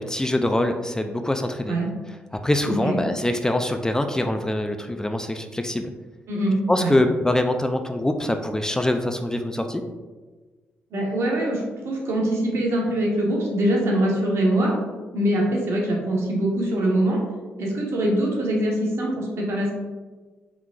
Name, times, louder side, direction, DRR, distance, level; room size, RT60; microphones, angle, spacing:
voice 1, 0.0-1.8 2.4-5.9 6.7-9.8, left 1 dB, 15° left, 6 dB, 0.4 m, -24 dB
voice 2, 2.6-3.0 6.3-6.9 10.9-14.8 15.1-17.2 17.6-19.7, right 1 dB, 65° right, -2 dB, 1.2 m, -23 dB
4.7 x 3.6 x 2.4 m, 1.3 s
hypercardioid pair, 45°, 5 cm